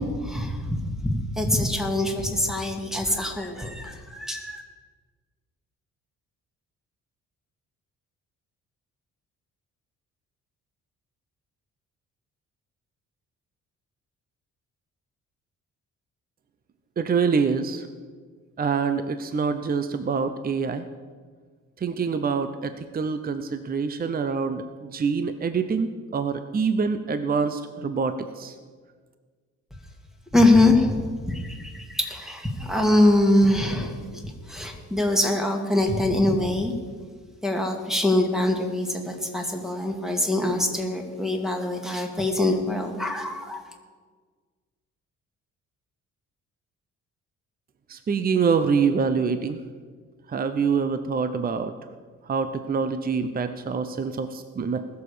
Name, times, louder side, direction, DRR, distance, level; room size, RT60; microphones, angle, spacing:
voice 1, 0.0-4.6 30.3-34.0 34.2-36.7 37.4-43.6, left 1 dB, ahead, 2 dB, 2.3 m, -23 dB
voice 2, 17.0-17.9 18.6-20.9 21.8-28.5 47.9-49.6 50.3-51.7 52.3-54.8, right 5 dB, 30° right, 9 dB, 0.7 m, -25 dB
20.0 x 7.1 x 5.0 m, 1.5 s
cardioid pair, 90°, 30 cm